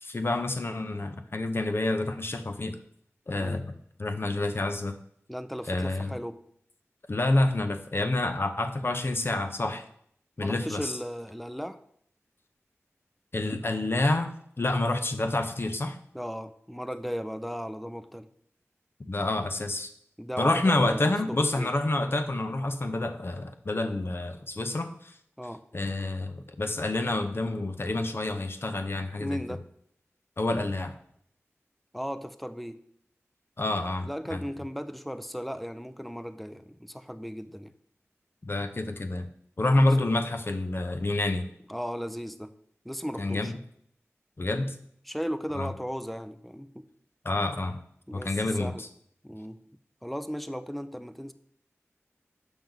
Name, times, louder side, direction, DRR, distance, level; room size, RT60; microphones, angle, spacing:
voice 1, 0.0-2.8 3.3-3.7 4.0-5.0 5.7-6.2 7.1-9.8 10.4-10.9 13.3-16.0 19.0-19.9 20.4-25.1 25.7-29.4 30.4-30.9 33.6-34.4 38.4-39.3 39.6-41.5 43.2-43.6 44.4-44.8 45.5-45.7 47.2-47.8 48.1-48.9, left 2 dB, 50° left, 7 dB, 0.8 m, -28 dB
voice 2, 5.3-6.4 10.4-11.8 14.7-14.9 16.1-18.3 20.2-21.7 25.4-25.6 29.2-29.6 31.9-32.8 34.0-37.7 39.7-39.9 41.7-42.5 42.8-43.5 45.0-46.9 48.1-48.9 49.2-49.6 50.0-51.3, equal, ahead, 10 dB, 0.5 m, -36 dB
7.2 x 5.9 x 3.9 m, 0.68 s
wide cardioid pair, 55°, 5 cm